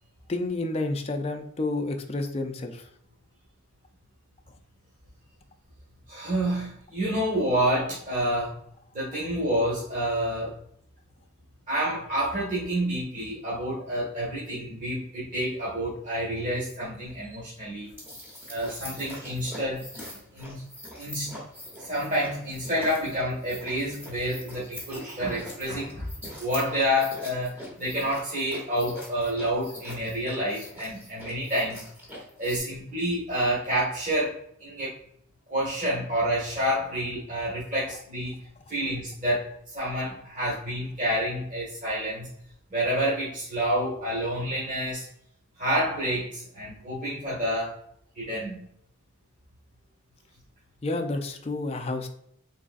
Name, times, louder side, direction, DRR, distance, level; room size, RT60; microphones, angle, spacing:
voice 1, 0.3-2.9 50.8-52.1, left 2 dB, 30° left, 5 dB, 0.4 m, -30 dB
voice 2, 6.1-8.6 8.9-10.5 11.7-17.9 18.5-19.8 20.3-20.6 21.0-21.3 21.8-26.1 26.4-31.8 32.4-34.9 35.5-38.4 38.7-42.3 42.7-45.1 45.6-47.8 48.1-48.6, equal, 40° right, -8 dB, 1.5 m, -28 dB
sound 1, 17.8-32.6, left 1 dB, 10° right, 1.0 m, -43 dB
4.0 x 3.7 x 2.5 m, 0.70 s
head